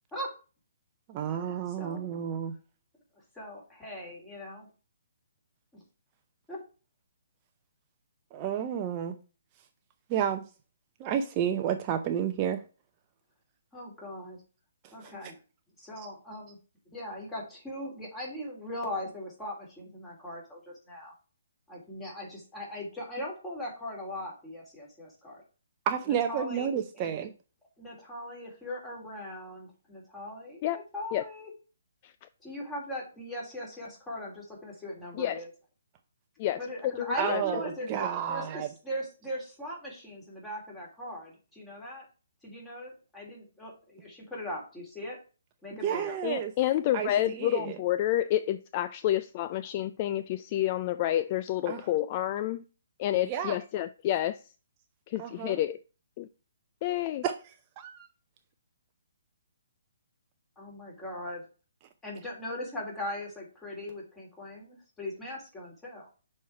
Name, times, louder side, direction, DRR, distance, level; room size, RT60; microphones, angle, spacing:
voice 1, 1.1-2.5 8.3-9.2 10.1-10.4 11.0-12.6 14.8-15.1 16.0-16.1 25.9-27.3 37.2-38.7 45.8-46.5 46.9-47.8 51.7-51.9 53.3-53.6 55.2-55.6 57.2-58.1, right 9 dB, 30° right, 0.6 m, -31 dB
voice 2, 1.7-2.0 3.3-4.7 5.7-5.8 6.5-6.6 13.7-14.4 14.9-15.4 15.8-16.6 16.9-21.1 21.7-25.4 26.1-26.7 26.9-27.1 27.8-31.5 32.4-35.5 36.6-37.9 38.3-42.0 42.4-45.2 45.6-46.2 47.2-47.3 60.6-61.4 62.0-66.1, left 1 dB, 10° left, 2.9 m, -39 dB
voice 3, 37.0-37.4 46.2-52.6 53.0-54.4 55.1-55.8 56.2-56.3 56.8-57.2, left 13 dB, 35° left, 0.3 m, -29 dB
6.2 x 4.3 x 4.5 m
hypercardioid pair, 140°, 0 cm